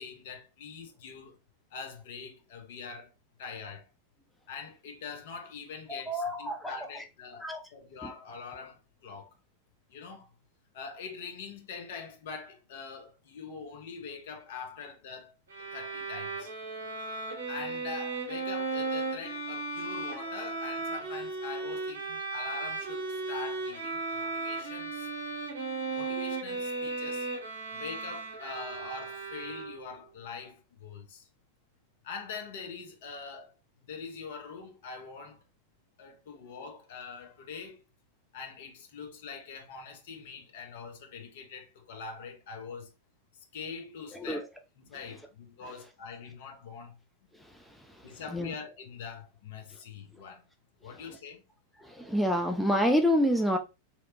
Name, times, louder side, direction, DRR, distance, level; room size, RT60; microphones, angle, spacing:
voice 1, 0.0-1.4 1.7-3.1 3.4-3.9 4.5-9.4 9.9-10.3 10.7-15.3 15.7-16.5 17.5-25.1 25.9-27.3 27.7-31.3 32.0-33.5 33.8-35.4 36.0-37.8 38.3-42.9 43.5-44.5 44.8-46.9 48.0-50.4 50.8-51.4, left 5 dB, 55° left, 0.6 m, -43 dB
voice 2, 5.9-6.7 7.4-7.6 8.0-8.1 44.1-44.4 48.3-48.5 51.8-53.6, equal, ahead, 0.4 m, -27 dB
Bowed string instrument, 15.5-30.0, right 3 dB, 70° right, 0.9 m, -36 dB
2.8 x 2.0 x 2.5 m
figure-of-eight pair, 90°, 0 cm